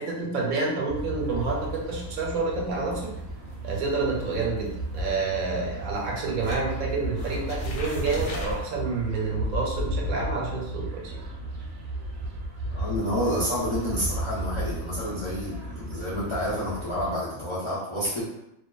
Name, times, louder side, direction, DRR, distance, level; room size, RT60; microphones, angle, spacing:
voice 1, 0.0-3.1 3.6-11.2, right 3 dB, 85° right, -1 dB, 1.0 m, -29 dB
sound 1, 0.9-17.1, right 1 dB, 65° right, 0.6 m, -34 dB
sound 2, 1.2-6.1 6.4-8.7, left 1 dB, 65° left, 0.9 m, -41 dB
voice 2, 12.7-18.4, equal, 45° left, -9 dB, 0.3 m, -29 dB
2.5 x 2.2 x 2.3 m, 0.83 s
omnidirectional pair, 1.5 m